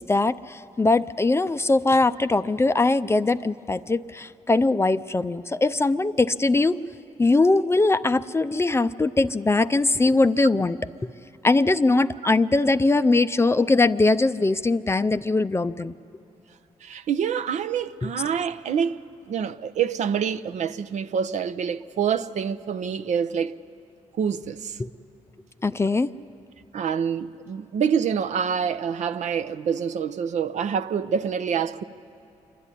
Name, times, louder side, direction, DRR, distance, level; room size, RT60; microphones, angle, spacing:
voice 1, 0.0-6.8 7.2-10.8 11.4-16.0 18.0-18.1 24.8-24.9 25.6-26.1, left 3 dB, 20° left, 0.5 m, -21 dB
voice 2, 16.8-19.0 19.3-23.5 24.2-24.8 26.7-31.8, right 7 dB, 60° right, 0.6 m, -26 dB
27.0 x 11.5 x 9.9 m
supercardioid pair, 65°, 13 cm